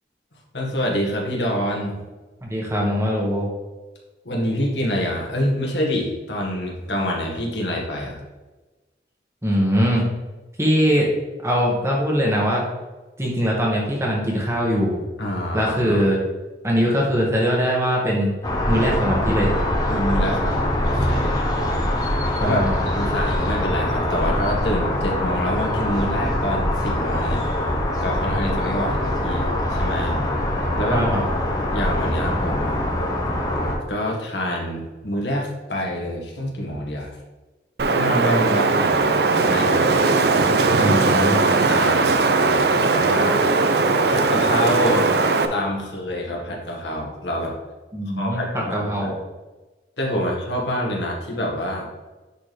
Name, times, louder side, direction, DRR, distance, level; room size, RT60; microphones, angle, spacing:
voice 1, 0.5-2.0 4.2-8.2 15.2-16.0 19.9-21.4 22.0-27.4 28.0-30.2 30.7-31.3 31.7-32.8 33.9-37.2 37.9-39.9 40.6-43.5 44.1-45.2 45.5-47.6 48.1-49.1 50.0-51.9, equal, 80° left, -1 dB, 1.7 m, -26 dB
voice 2, 2.4-3.5 9.4-10.0 10.6-11.1 11.4-12.6 13.2-15.0 15.5-16.2 16.6-18.3 18.7-19.5 22.4-22.8 30.9-31.2 40.8-41.4 47.9-49.2, equal, 15° right, -3 dB, 1.5 m, -21 dB
sound 1, 18.4-33.8, left 1 dB, 20° left, 1.2 m, -23 dB
Wind, 37.8-45.5, right 3 dB, 65° right, 0.6 m, -19 dB
10.0 x 4.3 x 3.3 m, 1.2 s
head